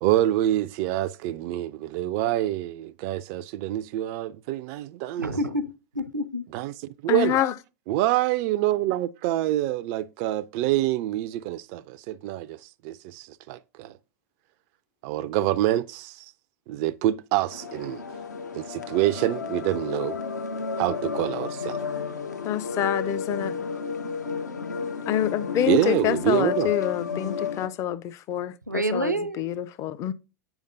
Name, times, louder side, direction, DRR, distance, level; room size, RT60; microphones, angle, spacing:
voice 1, 0.0-5.3 6.5-6.7 7.0-7.4 7.9-13.9 15.0-16.3 16.7-18.0 18.5-20.2 20.8-21.8 25.7-26.7, right 14 dB, 45° right, 0.3 m, -26 dB
voice 2, 5.2-6.5 28.7-29.4, right 1 dB, 90° right, 0.6 m, -28 dB
voice 3, 7.1-7.5 22.4-23.5 25.1-30.1, left 11 dB, 35° left, 0.5 m, -27 dB
sound 1, 17.5-27.7, left 6 dB, 80° left, 0.7 m, -32 dB
8.0 x 5.1 x 2.5 m
figure-of-eight pair, 90°, 9 cm